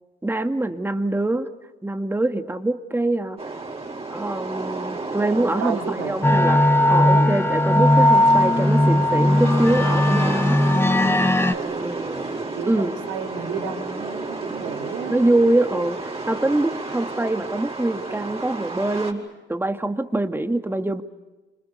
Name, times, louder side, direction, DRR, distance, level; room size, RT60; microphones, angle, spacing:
voice 1, 0.2-1.5 1.8-3.4 4.1-10.6 11.8-12.3 12.7-12.9 15.1-21.0, right 2 dB, 10° right, 7 dB, 2.1 m, -24 dB
sound 1, 3.4-19.1, right 3 dB, 30° right, 6.6 m, -32 dB
voice 2, 5.4-6.1 7.1-7.3 11.5-11.9 12.5-15.2, right 6 dB, 90° right, -4 dB, 4.8 m, -32 dB
sound 2, 6.2-11.5, left 1 dB, 10° left, 1.4 m, -17 dB
29.5 x 27.0 x 6.8 m, 1.1 s
cardioid pair, 90°, 20 cm